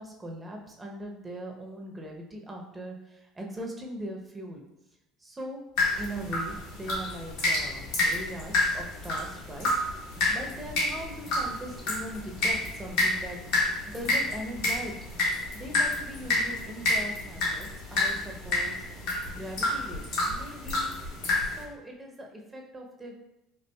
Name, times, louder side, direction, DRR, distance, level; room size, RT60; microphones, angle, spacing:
voice 1, 0.0-4.6 5.2-5.6 6.0-9.7 10.3-13.4 13.7-14.9 15.5-18.8 19.3-20.9 21.3-23.2, right 1 dB, 20° right, 0 dB, 0.7 m, -40 dB
sound 1, 5.8-21.6, left 2 dB, 75° left, 1.4 m, -29 dB
4.4 x 2.4 x 2.2 m, 0.87 s
hypercardioid pair, 70°, 0 cm